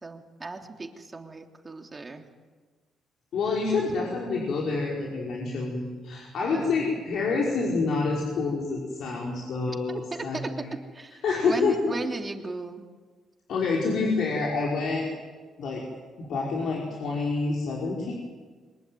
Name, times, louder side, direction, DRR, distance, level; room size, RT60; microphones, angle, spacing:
voice 1, 0.0-2.3 3.5-3.7 6.4-7.0 9.9-12.8, right 3 dB, 25° right, 4 dB, 3.1 m, -37 dB
voice 2, 3.3-10.7 11.2-11.8 13.5-15.1 15.6-15.8 16.2-18.1, left 4 dB, 70° left, -2 dB, 5.4 m, -27 dB
23.5 x 21.0 x 9.4 m, 1.4 s
cardioid pair, 90°, 0 cm